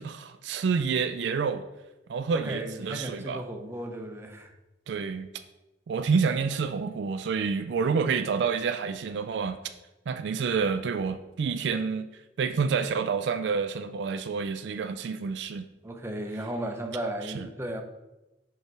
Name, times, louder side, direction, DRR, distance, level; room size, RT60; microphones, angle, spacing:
voice 1, 0.0-1.6 2.1-3.4 4.9-5.3 5.9-9.6 10.1-12.1 12.4-15.7 17.3-17.5, right 5 dB, 70° right, 9 dB, 0.3 m, -28 dB
voice 2, 2.3-4.5 15.8-17.8, right 1 dB, 15° right, 3 dB, 0.6 m, -35 dB
6.6 x 3.2 x 4.7 m, 1.0 s
head